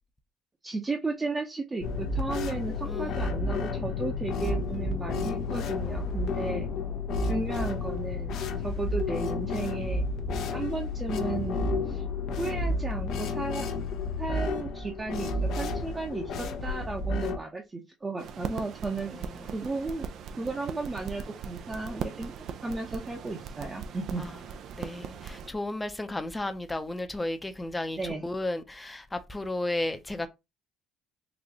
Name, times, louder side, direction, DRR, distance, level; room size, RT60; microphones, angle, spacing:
voice 1, 0.6-6.7 7.2-10.0 10.5-12.0 12.4-13.7 14.2-19.2 19.5-20.1 20.4-24.3 28.0-28.2, right 3 dB, 25° right, 0.8 m, -34 dB
sound 1, 1.8-17.4, left 3 dB, 65° left, 0.7 m, -31 dB
voice 2, 2.8-3.3 19.1-19.4 24.2-24.3 24.7-30.3, left 2 dB, 15° left, 0.7 m, -34 dB
sound 2, 18.2-25.5, right 7 dB, 60° right, 0.5 m, -39 dB
4.0 x 2.5 x 3.0 m
hypercardioid pair, 60°, 0 cm